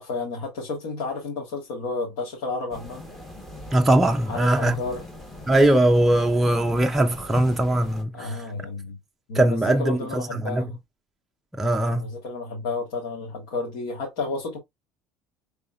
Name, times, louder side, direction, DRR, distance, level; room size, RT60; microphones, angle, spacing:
voice 1, 0.0-3.0 4.3-5.0 8.1-9.0 9.3-10.8 11.9-14.6, left 3 dB, 80° left, 1.5 m, -31 dB
sound 1, 2.7-8.0, left 2 dB, 10° left, 1.2 m, -40 dB
voice 2, 3.7-4.7 5.5-8.4 9.3-10.6 11.5-12.1, right 1 dB, 5° right, 0.4 m, -20 dB
5.3 x 3.4 x 2.4 m
cardioid pair, 125°, 2 cm